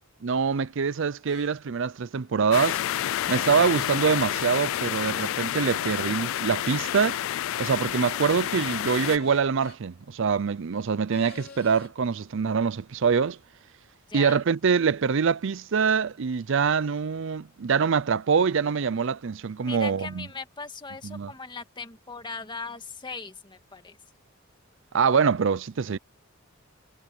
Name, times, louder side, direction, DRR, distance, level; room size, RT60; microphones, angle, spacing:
voice 1, 0.2-2.8 3.3-7.2 7.6-13.4 14.1-20.3 21.0-21.3 24.9-26.0, right 6 dB, 65° right, 0.5 m, -24 dB
sound 1, 1.3-1.5 3.6-4.2 6.6-7.0 8.9-9.8 11.1-11.9, left 6 dB, 50° left, 2.8 m, -48 dB
sound 2, 2.5-9.2, left 12 dB, 70° left, 0.3 m, -29 dB
voice 2, 3.4-3.8 14.1-14.4 19.6-24.0, left 4 dB, 20° left, 2.0 m, -39 dB
head